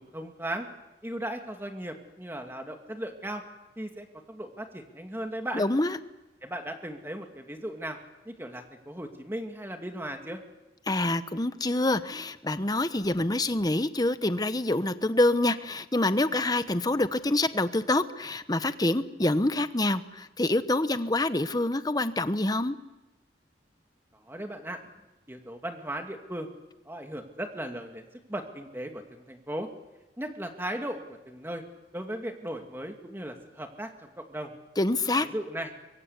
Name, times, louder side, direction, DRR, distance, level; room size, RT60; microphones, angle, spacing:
voice 1, 0.1-0.7 1.0-3.4 3.8-5.6 6.4-8.0 8.3-10.4 24.3-24.8 25.3-26.5 26.9-28.0 28.3-29.7 30.2-31.6 31.9-34.5 35.2-35.7, right 1 dB, 15° right, 4 dB, 2.4 m, -37 dB
voice 2, 5.5-6.0 10.9-22.7 34.8-35.3, left 2 dB, 20° left, 11 dB, 1.0 m, -26 dB
25.0 x 23.5 x 8.3 m, 1.0 s
head